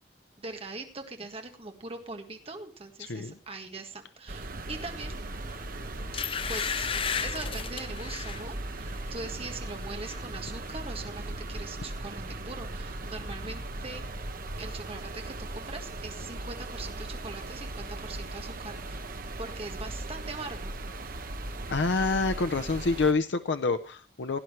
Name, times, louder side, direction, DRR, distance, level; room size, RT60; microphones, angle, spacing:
voice 1, 0.4-5.2 6.5-6.9 7.2-14.0 14.6-19.0 19.4-20.7, right 3 dB, 35° right, 4 dB, 1.8 m, -41 dB
voice 2, 3.0-3.3 21.7-24.4, left 3 dB, 90° left, 9 dB, 0.6 m, -27 dB
sound 1, 4.3-23.1, right 2 dB, 55° right, 1.2 m, -38 dB
sound 2, 5.4-5.6 6.1-8.5 8.9-9.1 9.5-10.2 10.5-10.6, left 7 dB, 30° left, 0.5 m, -33 dB
17.0 x 10.5 x 3.1 m, 0.34 s
head